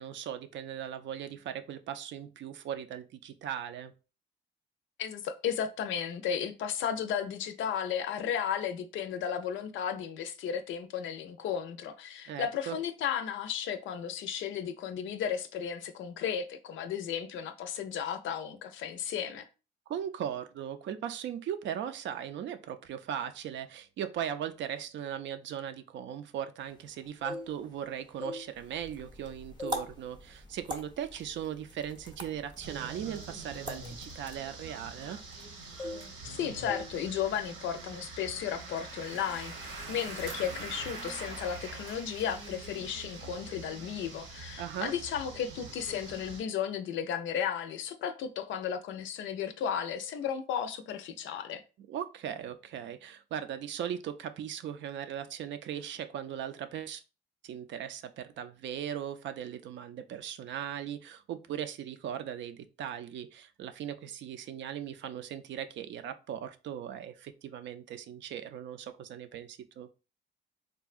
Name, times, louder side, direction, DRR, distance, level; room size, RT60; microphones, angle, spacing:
voice 1, 0.0-3.9 12.3-12.8 19.9-35.2 44.6-44.9 51.9-57.0 57.4-69.9, right 9 dB, 70° right, 0.4 m, -38 dB
voice 2, 5.0-19.4 36.2-51.6, left 8 dB, 75° left, 0.5 m, -34 dB
sound 1, 27.0-27.8 28.1-29.2 29.6-29.9 30.3-30.5 31.2-31.3 31.6-35.5 35.8-36.3 36.6-36.9 37.2-37.5, left 2 dB, 20° left, 0.4 m, -43 dB
sound 2, 28.5-34.4, equal, 20° right, 0.6 m, -44 dB
sound 3, 32.6-46.4, right 3 dB, 85° right, 0.9 m, -44 dB
3.6 x 2.2 x 2.4 m
cardioid pair, 90°, 20 cm